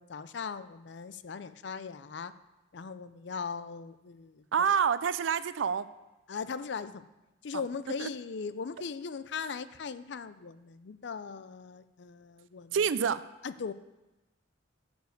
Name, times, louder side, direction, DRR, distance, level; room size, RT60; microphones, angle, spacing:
voice 1, 0.0-2.3 2.7-4.7 6.3-7.0 7.4-12.8 13.4-13.7, left 5 dB, 60° left, 14 dB, 0.4 m, -39 dB
voice 2, 4.5-5.9 8.0-8.1 12.7-13.2, right 7 dB, 80° right, 15 dB, 0.4 m, -27 dB
9.2 x 5.3 x 6.5 m, 1.1 s
head